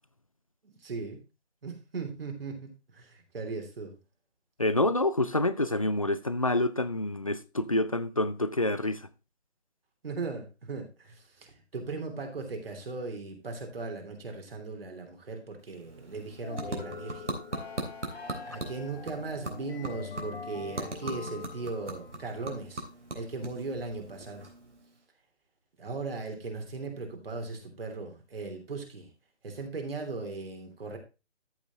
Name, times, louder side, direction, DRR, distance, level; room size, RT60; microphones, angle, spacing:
voice 1, 0.6-1.2 1.6-3.9 10.0-17.4 18.2-22.8 23.1-24.5 25.8-29.1 29.4-31.0, right 3 dB, 55° right, 3.1 m, -38 dB
voice 2, 4.6-9.0, left 2 dB, 30° left, 0.4 m, -27 dB
sound 1, 15.6-25.0, right 2 dB, 90° right, 3.2 m, -41 dB
sound 2, 16.4-22.1, left 4 dB, 60° left, 3.2 m, -43 dB
13.5 x 5.3 x 3.5 m
figure-of-eight pair, 155°, 34 cm